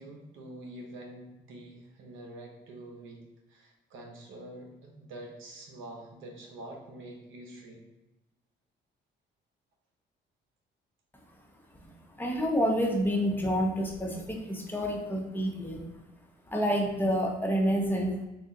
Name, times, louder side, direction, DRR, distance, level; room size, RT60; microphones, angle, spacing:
voice 1, 0.0-3.2 3.5-7.8, right 1 dB, 80° right, 1 dB, 0.9 m, -46 dB
voice 2, 12.2-15.8 16.5-18.2, equal, 10° left, 0 dB, 0.8 m, -28 dB
3.7 x 2.3 x 3.9 m, 1.0 s
cardioid pair, 90°, 20 cm